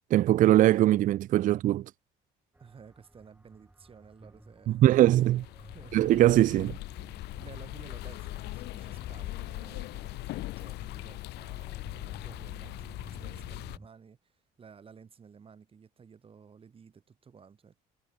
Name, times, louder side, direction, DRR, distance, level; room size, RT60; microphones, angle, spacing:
voice 1, 0.1-1.9 4.7-5.5 5.9-6.8, right 14 dB, 50° right, 0.4 m, -21 dB
sound 1, 2.5-13.9, right 2 dB, 10° right, 6.6 m, -54 dB
voice 2, 2.6-5.0 5.6-6.0 7.3-17.8, right 6 dB, 35° right, 2.3 m, -54 dB
sound 2, 5.1-13.8, left 18 dB, 80° left, 0.7 m, -40 dB
cardioid pair, 110°, 17 cm